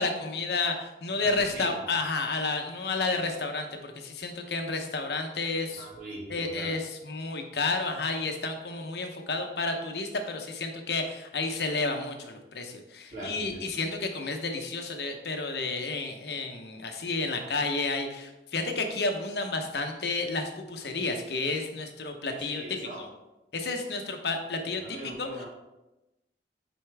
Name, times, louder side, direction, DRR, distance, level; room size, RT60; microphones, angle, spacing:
voice 1, 0.0-5.9 6.3-23.1 23.5-25.4, left 3 dB, 65° left, 5 dB, 0.9 m, -31 dB
voice 2, 1.2-1.8 5.6-6.7 13.1-13.7 22.3-23.0 24.8-25.5, right 1 dB, 45° right, -6 dB, 2.6 m, -41 dB
8.9 x 4.5 x 3.5 m, 1.0 s
head